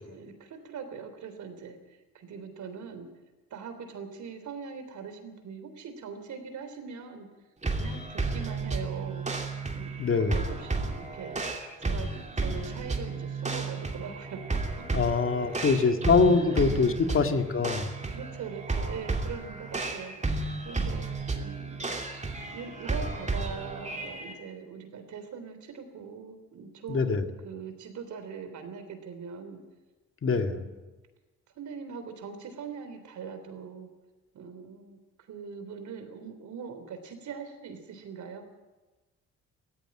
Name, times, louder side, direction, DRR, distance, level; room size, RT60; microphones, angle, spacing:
voice 1, 0.0-3.1 3.5-7.3 7.7-9.2 9.7-11.4 11.8-14.6 15.0-15.1 15.5-16.6 17.2-17.3 18.1-20.4 20.6-22.2 22.5-29.6 30.3-30.8 31.6-33.9 34.3-35.0 35.3-38.4, right 6 dB, 70° right, 8 dB, 3.5 m, -42 dB
sound 1, 7.6-24.3, right 3 dB, 25° right, 2.8 m, -33 dB
voice 2, 10.0-10.4 14.9-17.9 26.9-27.2 30.2-30.7, left 4 dB, 45° left, 6 dB, 2.1 m, -24 dB
16.5 x 16.0 x 10.0 m, 1.2 s
cardioid pair, 90°, 30 cm